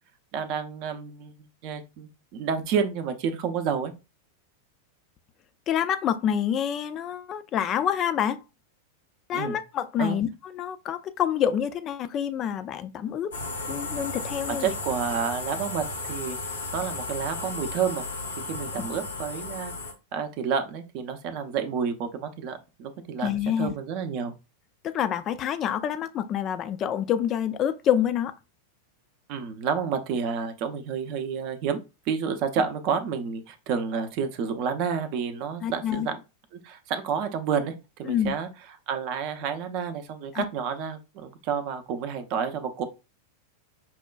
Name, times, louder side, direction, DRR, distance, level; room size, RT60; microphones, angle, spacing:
voice 1, 0.3-1.3 1.6-3.9 9.3-9.6 10.0-10.2 14.5-18.0 18.5-19.7 20.1-24.3 29.3-31.8 32.1-36.2 36.5-37.7 38.0-38.5 38.9-42.8, right 6 dB, 45° right, 0.6 m, -30 dB
voice 2, 5.7-8.4 9.3-13.3 13.7-14.7 18.8-18.9 23.2-23.7 24.8-28.3 35.6-36.1 38.1-38.3 40.3-40.4, left 9 dB, 30° left, 0.4 m, -27 dB
sound 1, 13.3-19.9, left 3 dB, 70° left, 0.8 m, -34 dB
5.5 x 2.2 x 2.3 m
figure-of-eight pair, 90°, 0 cm